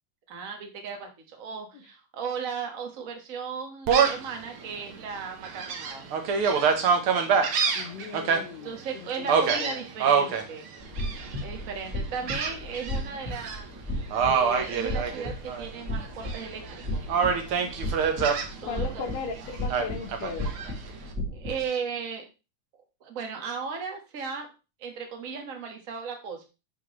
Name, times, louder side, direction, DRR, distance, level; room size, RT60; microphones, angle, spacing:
voice 1, 0.3-6.0 8.6-10.7 11.4-13.7 14.3-17.0 18.6-19.0 21.3-22.3 23.0-24.5 24.8-26.5, right 6 dB, 80° right, 3 dB, 0.7 m, -36 dB
Gull seagull, 3.9-4.3 4.8-4.9 5.4-8.4 9.3-10.4 11.0-11.4 12.3-13.0 13.3-13.6 14.1-15.7 16.0-16.7 17.1-18.5 19.7-20.7, right 6 dB, 65° right, 1.3 m, -25 dB
voice 2, 7.8-9.8 18.6-20.5, left 5 dB, 70° left, 0 dB, 1.6 m, -38 dB
sound 1, 10.8-21.6, left 1 dB, 25° right, 2.1 m, -35 dB
11.5 x 4.6 x 3.1 m, 0.29 s
omnidirectional pair, 3.8 m